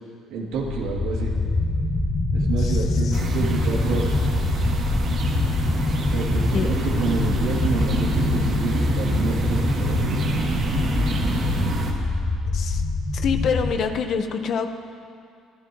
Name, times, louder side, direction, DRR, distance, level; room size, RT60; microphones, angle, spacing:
voice 1, 0.3-1.3 2.3-4.1 6.1-10.4, right 4 dB, 80° right, -2 dB, 2.7 m, -29 dB
sound 1, 0.5-13.7, left 2 dB, 30° left, 2.3 m, -24 dB
voice 2, 2.6-3.2 6.5-6.7 12.5-12.8 13.1-14.7, left 6 dB, 60° left, 6 dB, 1.1 m, -26 dB
sound 2, 3.1-11.9, right 3 dB, 55° right, 2.6 m, -28 dB
25.5 x 14.0 x 3.1 m, 2.4 s
cardioid pair, 95°, 0 cm